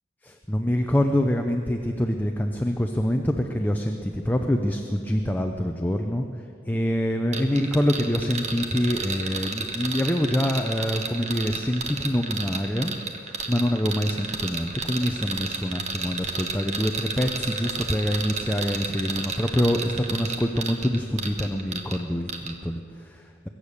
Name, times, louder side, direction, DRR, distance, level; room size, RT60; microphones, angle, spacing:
voice 1, 0.2-6.3 6.7-23.5, equal, 10° left, 4 dB, 0.6 m, -25 dB
sound 1, 7.3-22.0 22.3-22.5, right 4 dB, 40° right, 1.2 m, -31 dB
21.5 x 8.5 x 6.6 m, 2.4 s
head